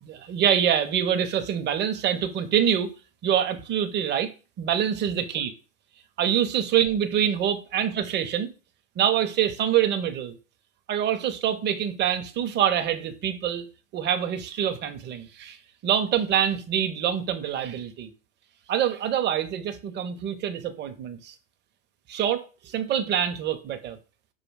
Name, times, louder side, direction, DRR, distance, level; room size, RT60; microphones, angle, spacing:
voice 1, 0.0-2.9 3.2-4.3 4.6-5.5 6.2-8.5 9.0-10.3 10.9-13.7 13.9-15.6 15.8-18.1 18.7-21.3 22.1-24.0, right 9 dB, 25° right, 0.7 m, -25 dB
4.9 x 2.3 x 4.6 m
hypercardioid pair, 95°, 39 cm